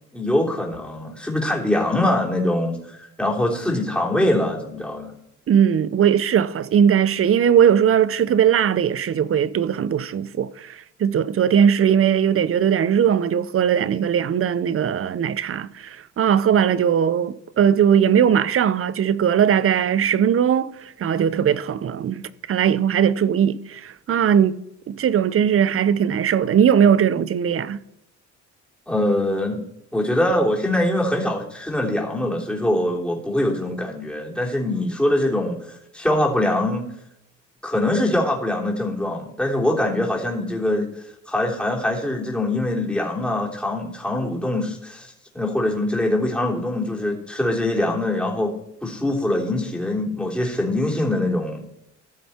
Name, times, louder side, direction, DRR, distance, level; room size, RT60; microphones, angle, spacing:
voice 1, 0.1-5.1 28.9-29.6 29.9-36.8 37.6-40.9 41.3-48.5 48.8-51.6, left 1 dB, 5° left, 3.4 m, -23 dB
voice 2, 5.5-22.2 22.5-24.6 24.9-27.8, right 8 dB, 45° right, 0.7 m, -19 dB
15.0 x 7.1 x 4.3 m
cardioid pair, 90°, 30 cm